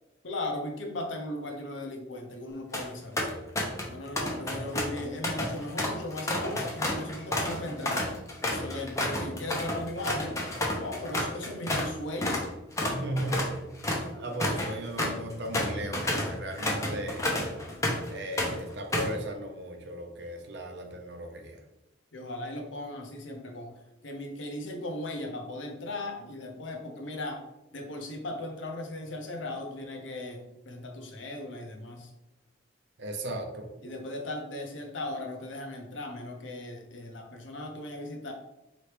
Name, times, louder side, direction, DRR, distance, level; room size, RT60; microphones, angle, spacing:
voice 1, 0.2-3.3 3.9-8.1 8.4-10.4 10.8-12.4 22.1-27.4 27.7-32.1 33.8-38.3, left 1 dB, 75° left, 3 dB, 0.8 m, -37 dB
sound 1, 2.5-2.9 3.2-3.9 4.2-11.9 12.2-12.5 12.8-18.1 18.4-19.2, left 1 dB, 15° left, 0.6 m, -30 dB
voice 2, 12.9-13.6 14.2-17.2 18.1-21.6 33.0-33.7, right 1 dB, 60° right, 4 dB, 0.7 m, -36 dB
4.1 x 3.1 x 3.3 m, 0.96 s
head